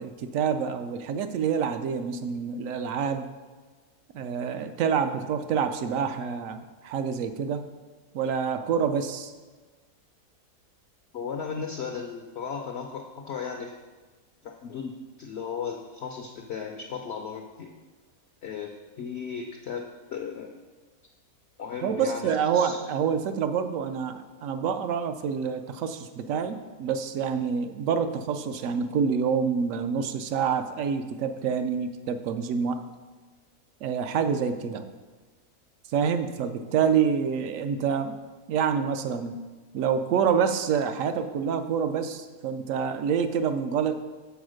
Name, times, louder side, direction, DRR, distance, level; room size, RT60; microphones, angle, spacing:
voice 1, 0.0-3.3 4.1-7.6 8.1-9.3 21.8-32.8 33.8-34.8 35.9-38.1 38.5-39.4 39.7-44.0, right 7 dB, 70° right, 9 dB, 0.9 m, -27 dB
voice 2, 11.1-13.7 14.4-17.7 18.4-20.6 21.6-22.8, left 6 dB, 65° left, 3 dB, 0.7 m, -36 dB
7.1 x 4.3 x 6.3 m, 1.3 s
omnidirectional pair, 1.6 m